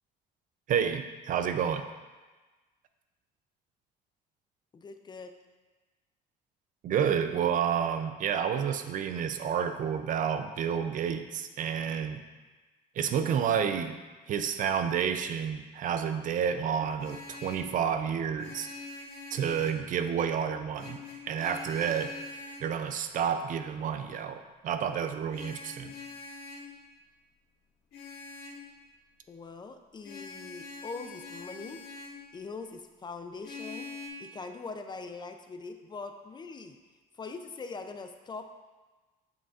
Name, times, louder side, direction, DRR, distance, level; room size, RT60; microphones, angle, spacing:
voice 1, 0.7-1.9 6.8-12.2 13.0-14.0 14.3-18.7 19.3-21.0 21.3-22.1 22.6-25.9, right 8 dB, 50° right, 9 dB, 0.4 m, -30 dB
voice 2, 4.7-5.3 29.3-31.8 32.3-33.9 34.2-36.8 37.2-38.5, left 4 dB, 25° left, 7 dB, 0.4 m, -42 dB
Vehicle horn car horn honking, 16.8-17.7 18.4-19.9 20.7-22.7 25.3-26.7 27.9-28.6 30.0-32.2 33.4-34.1, left 3 dB, 70° left, 1.7 m, -44 dB
7.3 x 5.7 x 2.4 m, 1.3 s
cardioid pair, 110°, 17 cm